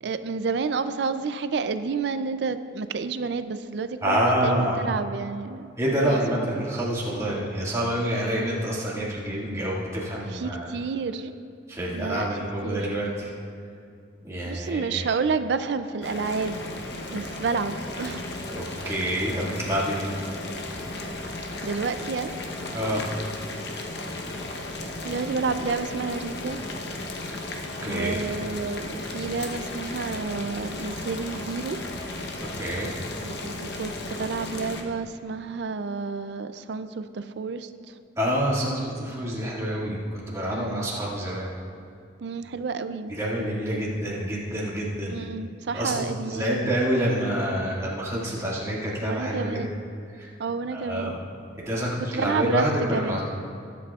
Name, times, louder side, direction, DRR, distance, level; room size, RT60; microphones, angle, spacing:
voice 1, 0.0-5.7 6.0-6.5 10.3-11.3 11.9-12.8 14.5-16.6 17.1-18.4 21.6-22.4 25.0-26.6 27.8-31.8 33.2-37.9 40.5-41.0 42.2-43.1 45.1-46.8 49.0-49.9 50.4-51.2 52.1-52.6 52.9-53.2, right 4 dB, 65° right, 11 dB, 0.4 m, -30 dB
voice 2, 4.0-4.8 5.8-10.7 11.7-13.3 14.2-15.0 18.5-20.1 22.7-23.1 27.8-28.2 32.4-32.9 38.2-41.5 43.2-45.2 45.7-49.6 50.2-50.3 50.7-51.2 51.6-53.2, equal, 15° right, -6 dB, 2.0 m, -27 dB
Boiling, 16.0-34.8, left 2 dB, 60° left, 1.0 m, -35 dB
20.5 x 8.4 x 2.4 m, 2.4 s
head